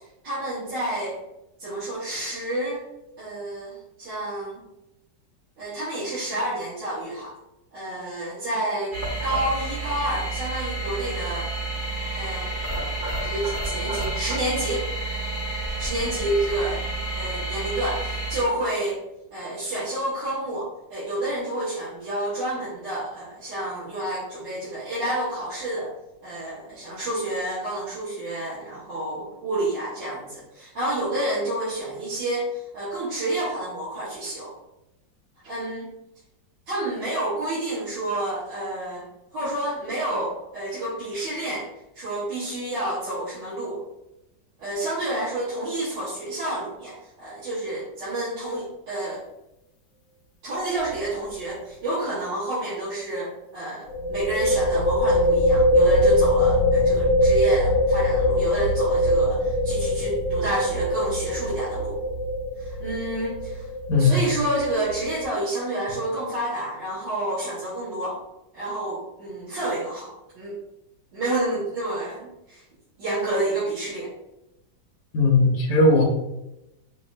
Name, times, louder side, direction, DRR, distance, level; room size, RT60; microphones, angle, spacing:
voice 1, 0.2-1.2 1.6-2.8 3.2-4.6 5.6-7.3 7.7-8.9 9.2-11.5 12.1-12.5 13.2-14.9 15.8-16.8 17.1-19.0 19.3-25.9 26.2-34.5 35.4-35.9 36.7-39.0 39.3-41.7 41.9-43.8 44.6-49.2 50.4-61.9 62.6-63.7 64.0-68.2 68.5-70.1 70.3-70.5 71.1-72.6 73.0-74.1, right 1 dB, 75° right, -13 dB, 2.1 m, -29 dB
sound 1, 8.9-18.4, right 2 dB, 45° right, 0.6 m, -30 dB
sound 2, 50.8-51.1 51.3-51.4 53.9-65.3, left 1 dB, 90° left, 1.3 m, -22 dB
voice 2, 75.1-76.0, left 2 dB, 65° left, -1 dB, 1.0 m, -18 dB
5.2 x 2.2 x 2.6 m, 0.89 s
omnidirectional pair, 2.0 m